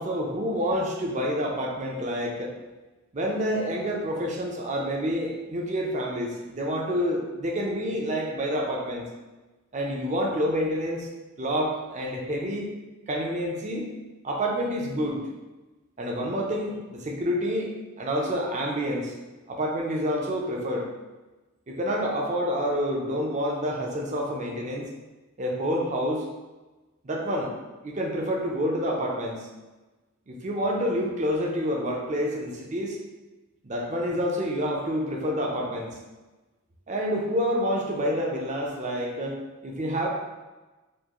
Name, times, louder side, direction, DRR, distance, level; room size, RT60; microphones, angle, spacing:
voice 1, 0.0-2.5 3.1-9.1 9.7-11.1 11.4-12.7 13.1-13.9 14.2-15.2 16.0-19.1 19.5-20.9 21.7-24.9 25.4-26.3 27.0-27.5 27.8-29.5 30.3-33.0 33.6-36.0 36.9-40.1, equal, 35° right, 0 dB, 0.5 m, -28 dB
4.5 x 2.5 x 3.0 m, 1.2 s
head